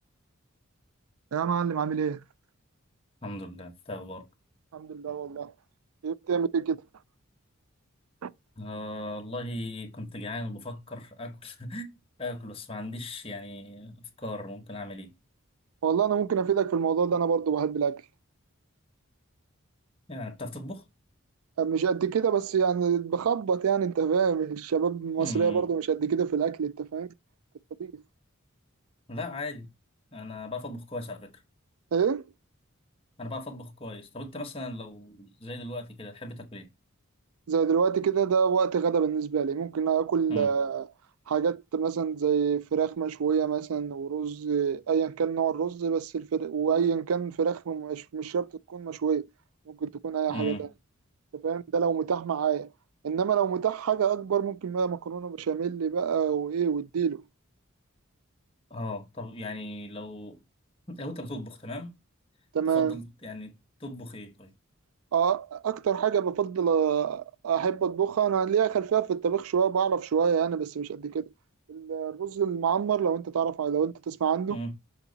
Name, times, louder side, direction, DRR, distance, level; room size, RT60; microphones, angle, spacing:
voice 1, 1.3-2.2 4.7-5.5 6.0-6.8 8.2-8.3 15.8-18.0 21.6-27.1 27.8-28.0 31.9-32.2 37.5-40.9 41.3-49.2 49.7-50.7 51.3-52.7 53.0-57.2 62.5-63.0 65.1-71.2 71.7-74.6, right 7 dB, 85° right, 0.4 m, -27 dB
voice 2, 3.2-4.2 8.6-11.9 12.2-15.1 20.1-20.8 25.2-25.7 29.1-29.7 30.1-31.4 33.2-36.7 40.3-40.6 50.3-50.7 58.7-60.4 60.9-61.9 62.7-64.5 74.5-74.7, left 1 dB, 25° left, 1.2 m, -38 dB
7.2 x 4.0 x 4.0 m
head